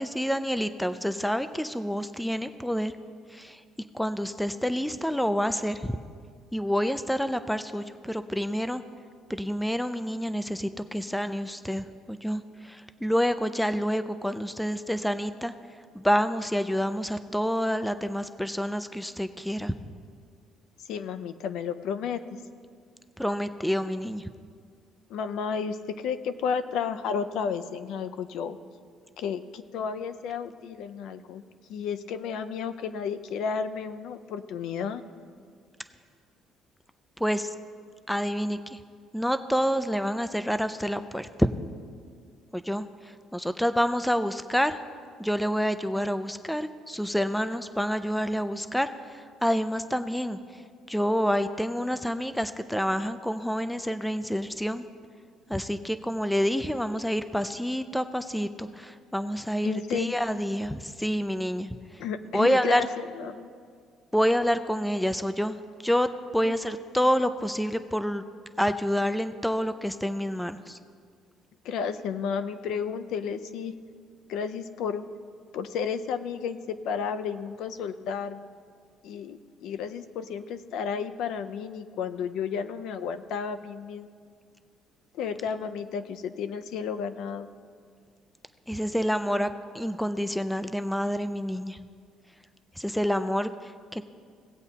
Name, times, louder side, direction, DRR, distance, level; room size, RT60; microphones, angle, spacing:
voice 1, 0.0-2.9 3.3-3.6 3.9-6.0 6.5-8.8 9.3-15.5 15.9-19.7 23.2-24.3 37.2-37.5 38.1-38.8 39.1-41.5 42.5-44.8 45.2-50.6 50.9-54.9 55.5-62.0 62.3-62.9 64.1-65.6 65.8-68.2 68.6-70.8 88.7-91.8 92.8-94.0, equal, ahead, 11 dB, 0.4 m, -28 dB
voice 2, 20.9-22.2 25.1-28.6 29.2-31.4 31.7-35.0 59.6-60.2 62.0-63.5 71.6-73.7 74.3-75.0 75.5-78.5 79.0-84.1 85.2-87.5, left 6 dB, 75° left, 11 dB, 0.5 m, -32 dB
18.5 x 8.0 x 2.8 m, 2.1 s
cardioid pair, 135°, 0 cm